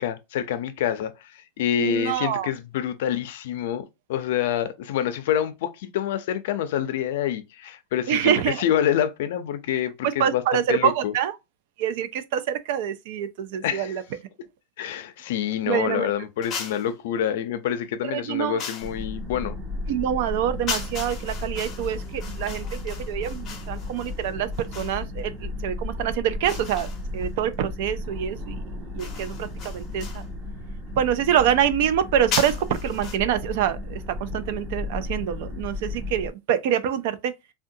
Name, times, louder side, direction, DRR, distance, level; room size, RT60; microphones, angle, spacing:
voice 1, 0.0-11.1 13.6-13.9 14.8-19.6, left 10 dB, 75° left, 0.4 m, -27 dB
voice 2, 1.8-2.5 8.1-8.6 10.0-11.4 11.8-14.0 15.7-16.1 18.0-18.6 19.9-28.6 28.9-30.2 31.0-37.3, right 10 dB, 60° right, 0.4 m, -26 dB
sound 1, 16.4-16.9 18.6-19.0 20.7-25.0 26.5-27.3 29.0-30.3 32.3-33.2, left 6 dB, 25° left, 0.6 m, -36 dB
sound 2, 18.8-36.3, left 2 dB, 15° right, 0.6 m, -34 dB
3.5 x 2.2 x 2.6 m
supercardioid pair, 165°, 0 cm